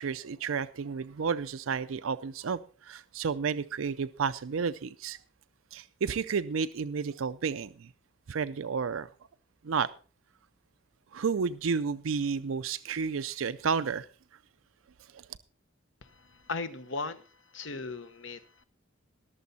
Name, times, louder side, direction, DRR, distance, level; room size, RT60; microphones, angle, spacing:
voice 1, 0.0-5.2 5.7-7.9 8.3-9.1 9.6-9.9 11.1-14.1 15.1-15.3, right 5 dB, 85° right, 0.5 m, -31 dB
voice 2, 16.0-18.6, left 3 dB, 70° left, 1.0 m, -38 dB
20.0 x 7.0 x 4.1 m
head